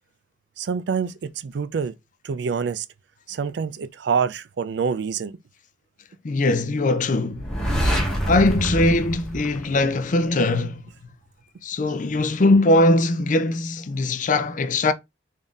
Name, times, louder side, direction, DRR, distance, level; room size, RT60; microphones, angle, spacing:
voice 1, 0.6-1.9 2.2-2.9 3.3-5.3, right 6 dB, 65° right, 0.4 m, -26 dB
voice 2, 6.2-7.5 8.3-10.8 11.6-14.9, left 2 dB, 45° left, 0.5 m, -20 dB
sound 1, 7.3-10.2, equal, 5° left, 1.1 m, -25 dB
3.6 x 2.7 x 3.6 m
head